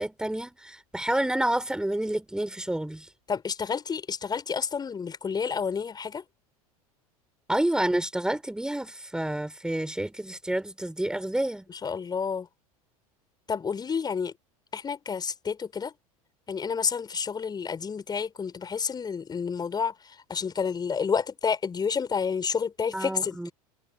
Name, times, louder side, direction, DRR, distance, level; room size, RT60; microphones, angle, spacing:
voice 1, 0.0-3.1 7.5-11.6 22.9-23.5, right 1 dB, 5° right, 4.4 m, -29 dB
voice 2, 3.3-6.2 11.7-12.5 13.5-14.3 14.7-15.9 16.5-19.9 20.3-23.4, left 6 dB, 20° left, 6.1 m, -29 dB
figure-of-eight pair, 80°, 19 cm